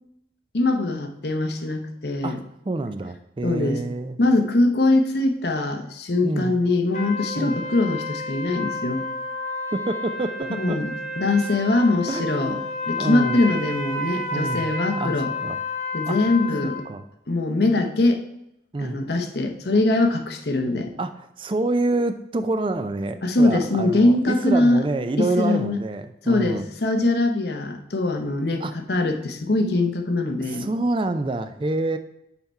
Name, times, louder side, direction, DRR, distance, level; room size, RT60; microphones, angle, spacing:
voice 1, 0.5-2.4 3.4-3.8 4.2-9.1 10.5-10.9 11.2-12.6 12.9-15.3 15.9-16.8 17.3-18.2 18.8-20.9 23.2-24.8 25.2-25.8 26.2-30.7, left 2 dB, 65° left, 5 dB, 0.8 m, -22 dB
voice 2, 2.6-4.2 6.2-6.5 7.3-7.6 9.7-10.8 12.1-12.6 13.0-13.4 14.3-15.6 16.1-16.2 16.6-17.0 18.7-19.0 21.0-26.7 28.6-28.7 30.5-32.0, right 2 dB, 30° right, 9 dB, 0.3 m, -27 dB
sound 1, 6.9-16.8, left 2 dB, 40° left, 1.0 m, -31 dB
5.7 x 4.4 x 5.4 m, 0.84 s
head